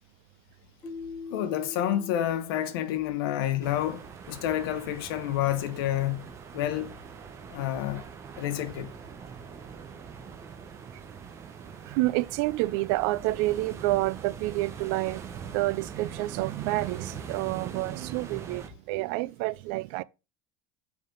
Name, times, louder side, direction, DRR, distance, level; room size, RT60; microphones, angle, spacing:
Keyboard (musical), 0.8-3.7, left 4 dB, 20° left, 3.9 m, -43 dB
voice 1, 1.3-6.3 6.5-7.0 7.5-8.0 8.4-8.9, left 12 dB, 80° left, 1.0 m, -29 dB
sound 1, 3.6-18.7, right 6 dB, 20° right, 0.9 m, -43 dB
voice 2, 11.8-20.0, right 19 dB, 60° right, 0.4 m, -29 dB
7.5 x 5.2 x 3.9 m
cardioid pair, 165°, 12 cm